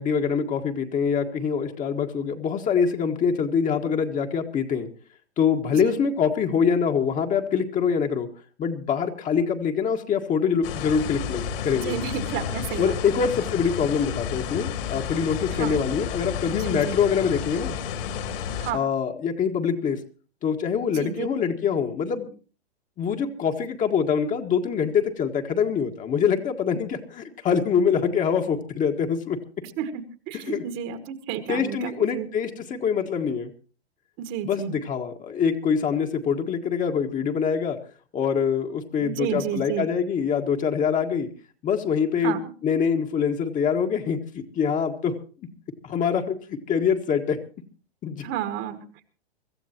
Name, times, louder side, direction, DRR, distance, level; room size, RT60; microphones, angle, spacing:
voice 1, 0.0-4.9 5.4-8.3 8.6-12.0 12.8-17.8 18.7-20.0 20.4-22.3 23.0-29.4 30.5-30.6 31.5-33.5 34.4-37.8 38.1-41.3 41.6-42.4 42.6-45.1 45.8-47.4 48.0-48.2, left 6 dB, 25° left, 4 dB, 1.8 m, -24 dB
sound 1, 10.6-18.7, left 8 dB, 55° left, 3.4 m, -31 dB
voice 2, 11.8-13.0 15.5-15.8 16.5-17.0 18.6-18.8 20.9-21.3 29.8-32.3 34.2-34.8 39.0-39.9 42.2-42.5 48.2-48.8, right 10 dB, 35° right, 9 dB, 1.9 m, -31 dB
24.5 x 14.5 x 3.0 m, 0.37 s
hypercardioid pair, 115°, 33 cm